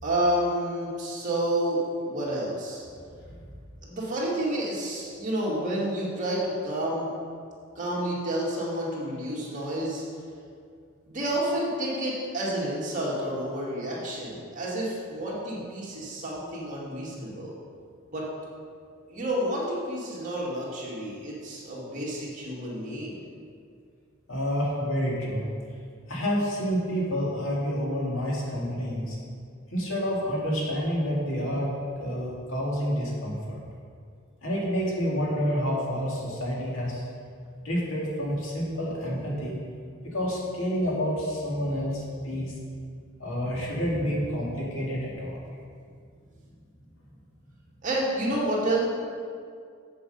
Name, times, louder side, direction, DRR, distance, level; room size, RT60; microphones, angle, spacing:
voice 1, 0.0-2.8 3.8-7.1 7.8-10.0 11.1-17.6 18.1-18.3 19.1-23.2 47.8-48.8, right 1 dB, 40° right, -6 dB, 2.2 m, -29 dB
voice 2, 24.3-25.5 26.1-29.2 29.7-33.6 34.4-37.0 37.6-39.5 40.1-42.5 43.2-45.4, equal, 70° left, -4 dB, 2.3 m, -28 dB
7.7 x 6.9 x 5.4 m, 2.2 s
head